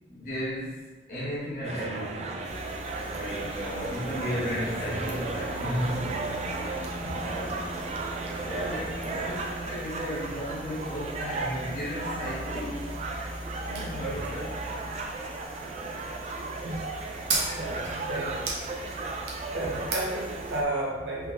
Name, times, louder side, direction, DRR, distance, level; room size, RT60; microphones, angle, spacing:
voice 1, 0.1-2.5 3.1-6.5 7.0-7.6 8.4-12.9 13.6-14.9, equal, 45° left, -8 dB, 1.3 m, -34 dB
sound 1, 1.6-20.6, right 3 dB, 35° right, 0.3 m, -35 dB
sound 2, 2.4-20.6, right 2 dB, 65° right, 0.7 m, -39 dB
voice 2, 17.5-18.5 18.8-19.0 19.5-21.3, right 1 dB, 85° right, -4 dB, 1.0 m, -32 dB
3.7 x 3.5 x 2.5 m, 1.2 s
head